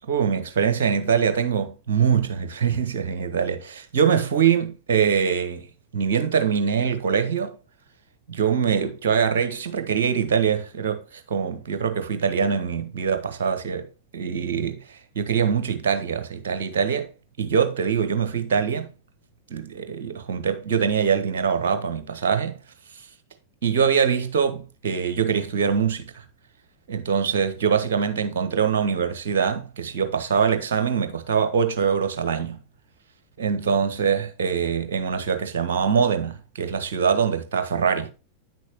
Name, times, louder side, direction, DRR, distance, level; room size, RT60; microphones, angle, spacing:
voice 1, 0.0-5.7 5.9-7.6 8.3-13.9 14.1-17.1 17.4-18.9 19.5-22.6 23.6-26.2 26.9-32.6 33.4-38.1, right 7 dB, 60° right, 1.3 m, -23 dB
9.3 x 6.3 x 3.0 m
figure-of-eight pair, 90°, 0 cm